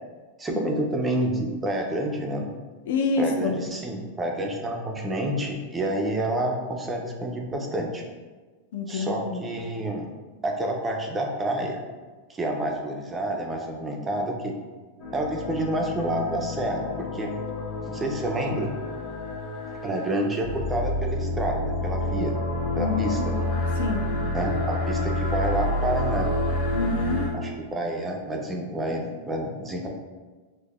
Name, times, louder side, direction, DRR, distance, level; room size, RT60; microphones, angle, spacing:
voice 1, 0.4-2.5 3.2-8.0 8.9-10.1 10.4-11.8 12.3-14.5 15.1-17.3 17.9-18.7 19.8-22.4 22.8-23.3 24.3-26.3 27.3-29.9, right 1 dB, 10° right, 1 dB, 0.3 m, -28 dB
voice 2, 2.9-3.5 8.7-9.4 22.7-23.3 23.8-24.1 26.7-27.2, left 3 dB, 70° left, 4 dB, 0.4 m, -27 dB
sound 1, 15.0-27.3, left 2 dB, 35° left, 0.9 m, -29 dB
5.1 x 2.0 x 2.2 m, 1.3 s
supercardioid pair, 165°, 0 cm